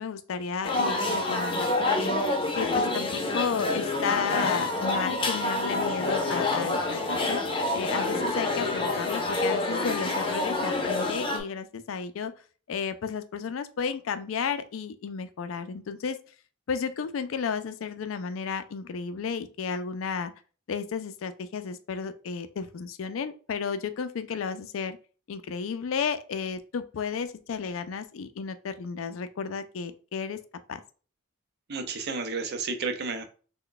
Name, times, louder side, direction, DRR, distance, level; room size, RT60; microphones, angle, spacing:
voice 1, 0.0-1.7 2.0-2.1 2.5-7.4 7.7-12.3 12.7-16.2 16.7-20.3 20.7-25.0 25.3-30.4 30.7-30.8, left 6 dB, 90° left, 10 dB, 0.4 m, -33 dB
sound 1, 0.6-11.4, left 2 dB, 25° left, 0.6 m, -27 dB
voice 2, 31.7-33.3, right 4 dB, 55° right, 8 dB, 0.5 m, -32 dB
3.2 x 2.2 x 3.8 m, 0.38 s
head